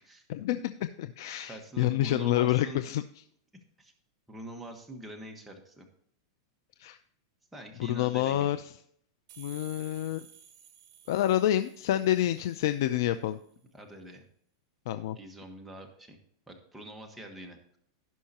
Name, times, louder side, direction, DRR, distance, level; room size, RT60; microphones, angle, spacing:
voice 1, 0.3-3.0 6.8-7.0 7.9-8.6 9.4-10.2 11.1-13.4 14.9-15.2, left 13 dB, 60° left, 11 dB, 0.5 m, -28 dB
voice 2, 1.4-2.8 3.8-3.9 4.3-5.9 7.5-8.6 13.7-14.2 15.1-16.2 16.5-17.8, right 1 dB, 5° right, 1 dB, 1.4 m, -45 dB
sound 1, 9.3-12.9, right 8 dB, 50° right, 1.5 m, -54 dB
16.5 x 5.6 x 2.9 m, 0.67 s
supercardioid pair, 155°, 2 cm